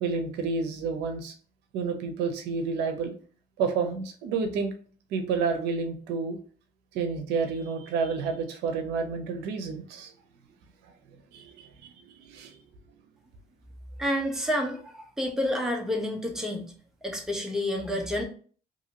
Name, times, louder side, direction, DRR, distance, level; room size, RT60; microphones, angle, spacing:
voice 1, 0.0-1.3 1.7-3.1 3.6-4.7 5.1-6.4 6.9-10.1 11.3-12.6, right 5 dB, 85° right, 6 dB, 0.6 m, -30 dB
voice 2, 14.0-16.7 17.0-18.2, left 1 dB, 5° right, 1 dB, 0.7 m, -29 dB
2.7 x 2.6 x 2.8 m, 0.43 s
cardioid pair, 110°, 17 cm